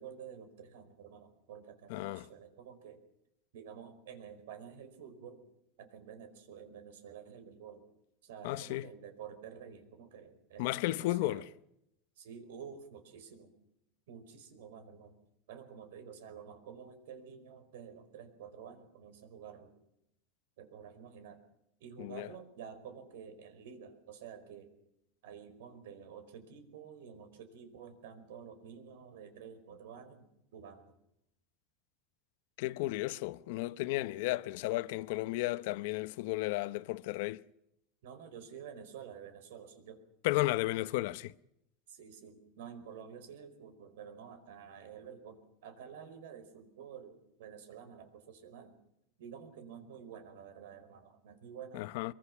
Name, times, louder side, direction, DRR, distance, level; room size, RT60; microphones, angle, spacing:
voice 1, 0.0-3.0 3.5-5.5 5.8-7.8 8.2-11.4 12.2-13.6 14.1-15.2 15.5-19.7 20.6-21.4 21.8-24.7 25.2-30.9 38.0-40.0 41.9-48.8 49.2-51.9, right 7 dB, 85° right, 4.8 m, -50 dB
voice 2, 1.9-2.3 8.4-8.9 10.6-11.4 22.0-22.3 32.6-37.4 40.2-41.3 51.7-52.1, left 18 dB, 65° left, 0.8 m, -33 dB
24.0 x 23.0 x 5.9 m
supercardioid pair, 155°, 0 cm